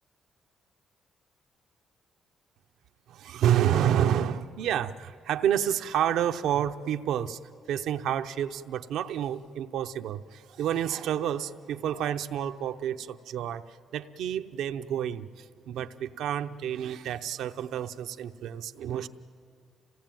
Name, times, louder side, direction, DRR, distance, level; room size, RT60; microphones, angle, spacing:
voice 1, 3.1-7.4 7.7-13.7 13.9-19.1, right 10 dB, 80° right, 0.7 m, -29 dB
26.5 x 17.5 x 9.1 m
cardioid pair, 90°, 0 cm